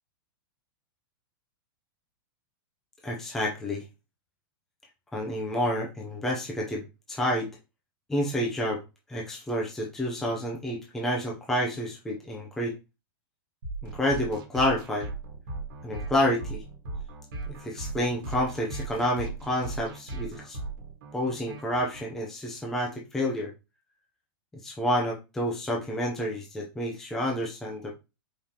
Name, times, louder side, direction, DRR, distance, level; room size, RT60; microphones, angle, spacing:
voice 1, 3.0-3.8 5.1-6.8 7.1-7.5 8.1-8.8 9.1-12.7 13.9-15.1 15.8-16.6 17.6-20.6 21.1-23.5 24.6-27.9, left 1 dB, 5° left, -1 dB, 0.5 m, -29 dB
sound 1, 13.6-22.0, right 3 dB, 60° right, 1.6 m, -37 dB
4.9 x 3.6 x 2.8 m, 0.27 s
supercardioid pair, 175°, 13 cm